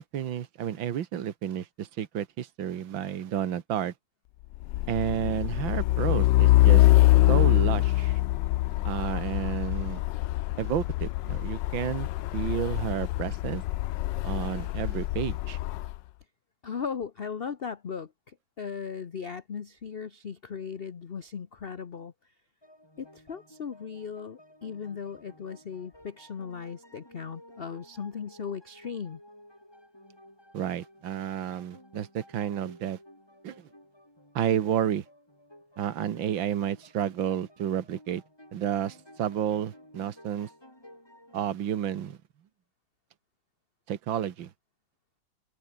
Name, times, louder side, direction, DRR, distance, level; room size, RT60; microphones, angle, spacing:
voice 1, 0.0-3.9 4.9-6.9 7.3-8.2 8.8-10.0 10.6-13.6 14.2-15.6 30.5-33.0 33.4-33.7 34.4-35.0 35.8-38.2 38.5-40.5 41.3-42.2 43.9-44.5, right 10 dB, 75° right, 2.1 m, -31 dB
Truck, 4.5-16.0, left 16 dB, 75° left, 1.2 m, -24 dB
voice 2, 16.6-22.1 23.0-29.2, left 6 dB, 40° left, 0.8 m, -37 dB
sound 1, 22.6-41.5, left 1 dB, 10° left, 6.4 m, -54 dB
open air
omnidirectional pair, 2.1 m